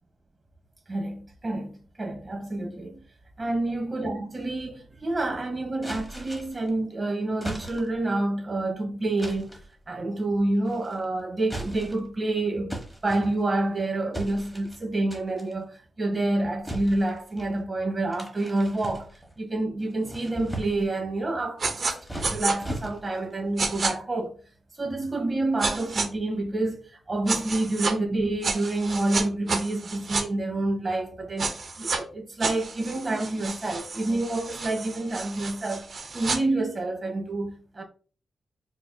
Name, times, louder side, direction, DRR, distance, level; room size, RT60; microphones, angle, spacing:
voice 1, 0.9-3.0 3.4-12.8 13.0-19.1 19.4-24.4 24.8-35.9 36.1-37.8, right 2 dB, 35° right, 1.3 m, -28 dB
sound 1, 5.8-6.7 7.4-8.1 9.2-9.7 10.6-11.0 11.4-12.1 12.7-13.7 14.1-14.8 15.1-15.5 16.6-17.5 18.1-19.4 19.9-21.0 21.7-23.3, right 1 dB, ahead, 1.2 m, -38 dB
sound 2, 21.6-21.9 22.2-22.5 23.6-23.9 25.6-26.1 27.3-27.9 28.4-30.2 31.4-32.0 32.4-36.4, right 4 dB, 60° right, 0.8 m, -30 dB
4.6 x 2.8 x 2.3 m
cardioid pair, 65°, 0 cm